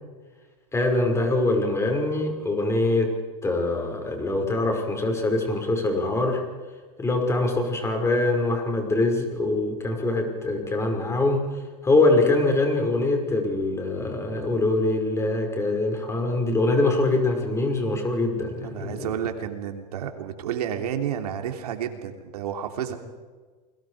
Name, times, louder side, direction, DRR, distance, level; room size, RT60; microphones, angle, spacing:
voice 1, 0.7-3.1 3.4-6.4 7.0-19.1, left 2 dB, 15° left, 3 dB, 5.7 m, -23 dB
voice 2, 18.6-23.0, right 9 dB, 85° right, 5 dB, 3.2 m, -31 dB
29.5 x 21.5 x 5.0 m, 1.4 s
supercardioid pair, 120°, 19 cm